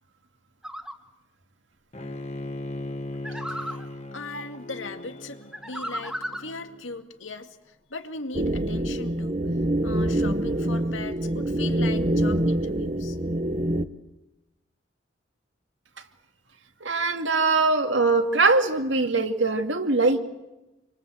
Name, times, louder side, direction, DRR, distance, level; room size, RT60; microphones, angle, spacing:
sound 1, 0.6-0.9 3.2-3.9 5.5-6.5, equal, 5° right, 1.9 m, -34 dB
Bowed string instrument, 1.9-7.0, left 1 dB, 35° left, 1.6 m, -38 dB
voice 1, 4.1-9.4 9.8-13.2, left 3 dB, 90° left, 6 dB, 2.3 m, -39 dB
sound 2, 8.3-13.9, right 1 dB, 35° right, 0.9 m, -25 dB
voice 2, 16.8-20.2, right 3 dB, 75° right, 6 dB, 2.4 m, -22 dB
28.0 x 24.0 x 8.0 m, 0.99 s
head